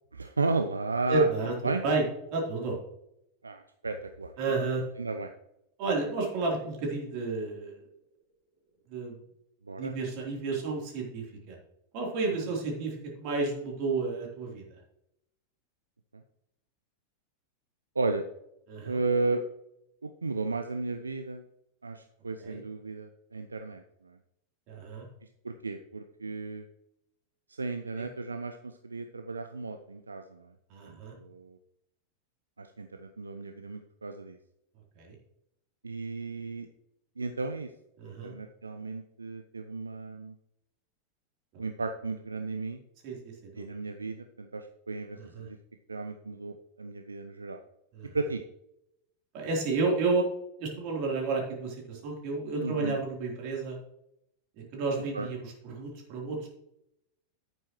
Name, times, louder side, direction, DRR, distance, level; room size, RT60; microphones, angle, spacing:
voice 1, 0.1-1.3 1.6-1.8 3.4-4.3 5.0-5.3 9.7-9.9 12.4-12.5 18.0-18.2 18.8-19.4 20.0-21.4 21.8-24.2 25.4-26.7 27.5-30.5 30.8-31.6 32.6-34.4 35.8-36.7 37.2-37.7 38.0-40.3 41.6-42.8 43.6-45.6 45.9-47.6 48.1-48.4 52.6-53.0 55.1-55.3, right 3 dB, 75° right, 7 dB, 0.5 m, -34 dB
voice 2, 1.1-1.5 1.8-2.0 2.3-2.8 4.4-4.8 5.8-7.8 8.9-9.2 9.8-11.6 11.9-14.6 18.7-19.0 22.4-22.6 24.7-25.1 28.0-28.1 30.7-31.1 35.0-35.2 38.0-38.3 43.0-43.2 43.5-43.7 45.2-45.5 47.9-48.2 49.3-50.3 50.6-53.8 54.7-56.5, right 3 dB, 45° right, -1 dB, 3.5 m, -31 dB
10.5 x 9.0 x 3.1 m, 0.82 s
figure-of-eight pair, 90°, 0 cm